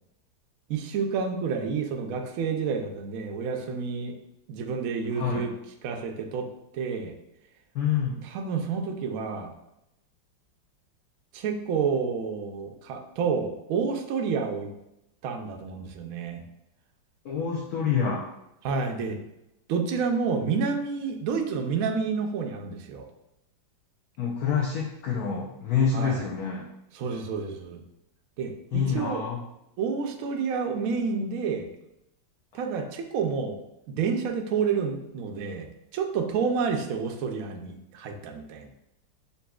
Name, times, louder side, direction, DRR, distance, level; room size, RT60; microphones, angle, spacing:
voice 1, 0.7-4.2 4.5-5.5 5.8-6.5 6.7-7.1 8.3-9.5 11.3-14.7 15.2-16.4 18.6-19.2 19.7-23.1 25.9-26.2 26.9-27.8 28.4-29.2 29.8-31.7 32.5-33.6 33.9-38.7, right 5 dB, 80° right, 3 dB, 0.7 m, -29 dB
voice 2, 5.1-5.5 7.7-8.2 17.2-18.2 24.2-26.7 28.7-29.4, left 6 dB, 70° left, -2 dB, 0.9 m, -27 dB
6.8 x 2.6 x 2.3 m, 0.86 s
omnidirectional pair, 2.1 m